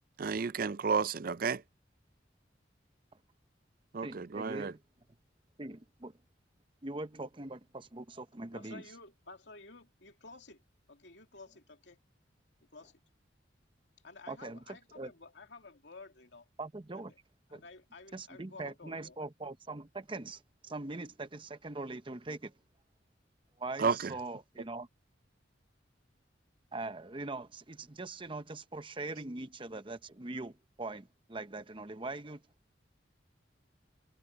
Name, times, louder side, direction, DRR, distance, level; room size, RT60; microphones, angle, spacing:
voice 1, 0.2-1.6 3.9-4.7 23.8-24.1, right 5 dB, 50° right, 0.5 m, -31 dB
voice 2, 4.0-4.8 5.6-6.1 6.8-8.8 14.3-14.6 15.0-15.1 16.6-17.1 17.5-17.6 18.1-22.5 23.6-24.9 26.7-32.4, right 2 dB, 30° right, 0.8 m, -42 dB
voice 3, 8.5-10.6 10.9-12.0 12.7-13.0 14.0-16.5 16.9-17.2 17.5-19.2, left 3 dB, 75° left, 2.5 m, -53 dB
head